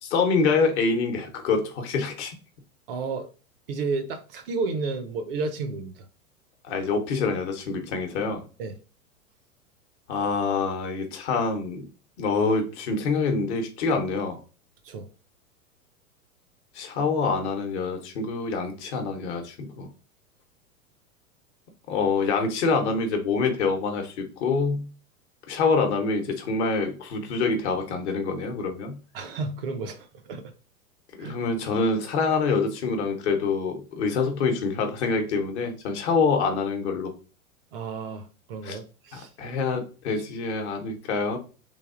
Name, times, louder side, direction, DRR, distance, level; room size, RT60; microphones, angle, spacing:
voice 1, 0.0-2.3 6.7-8.4 10.1-11.9 12.2-14.4 16.7-19.9 21.9-24.9 25.5-29.0 31.2-37.1 38.6-38.8 39.1-41.4, left 4 dB, 50° left, 0.9 m, -26 dB
voice 2, 2.9-3.3 3.7-6.1 8.6-8.8 14.8-15.1 29.1-30.5 31.2-31.4 37.7-39.3, right 4 dB, 40° right, 0.5 m, -32 dB
3.3 x 2.3 x 2.4 m
figure-of-eight pair, 100°, 43 cm